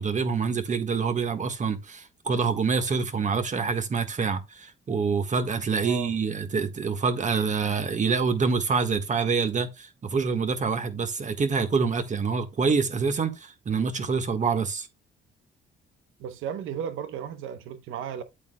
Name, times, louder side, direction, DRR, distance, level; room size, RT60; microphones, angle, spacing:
voice 1, 0.0-14.9, right 5 dB, 40° right, 1.5 m, -26 dB
voice 2, 5.8-6.1 16.2-18.2, right 8 dB, 90° right, 0.8 m, -34 dB
8.5 x 8.4 x 2.2 m
cardioid pair, 90°, 20 cm